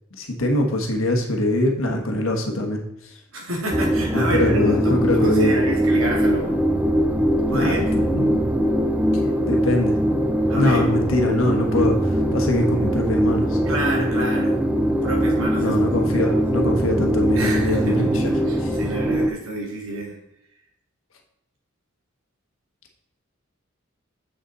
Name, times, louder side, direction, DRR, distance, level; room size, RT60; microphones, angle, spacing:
voice 1, 0.2-3.2 4.1-5.6 7.5-8.5 9.1-10.0 10.5-13.6 15.6-18.3 18.6-18.8, left 1 dB, 80° left, 2 dB, 1.4 m, -23 dB
voice 2, 3.3-6.6 7.5-7.8 10.5-10.8 13.7-14.6 15.0-15.8 16.3-16.4 17.4-20.2, right 1 dB, 90° right, -1 dB, 2.2 m, -29 dB
sound 1, 3.7-19.3, equal, 5° right, 0.5 m, -21 dB
6.9 x 6.7 x 4.0 m, 0.80 s
head